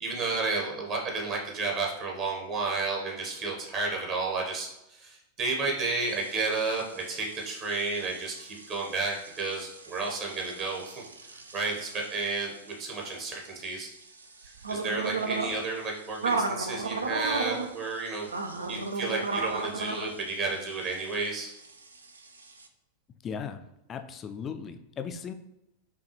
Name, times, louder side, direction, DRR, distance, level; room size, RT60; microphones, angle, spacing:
voice 1, 0.0-11.0 11.3-12.5 12.8-13.9 14.7-18.3 18.7-21.5, right 3 dB, 35° right, -1 dB, 0.9 m, -32 dB
sound 1, 6.0-22.7, right 3 dB, 75° right, 0.3 m, -36 dB
voice 2, 23.2-23.6 23.9-25.3, left 6 dB, 25° left, 8 dB, 0.3 m, -37 dB
5.3 x 2.3 x 2.9 m, 0.88 s
figure-of-eight pair, 90°, 0 cm